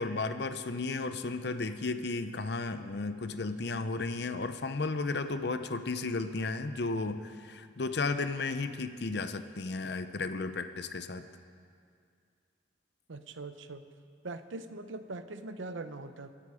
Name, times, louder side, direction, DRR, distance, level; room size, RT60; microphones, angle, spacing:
voice 1, 0.0-11.2, left 3 dB, 60° left, 10 dB, 0.6 m, -34 dB
voice 2, 13.1-13.8 14.2-16.3, right 3 dB, 85° right, 10 dB, 0.7 m, -41 dB
23.0 x 8.6 x 5.0 m, 2.3 s
head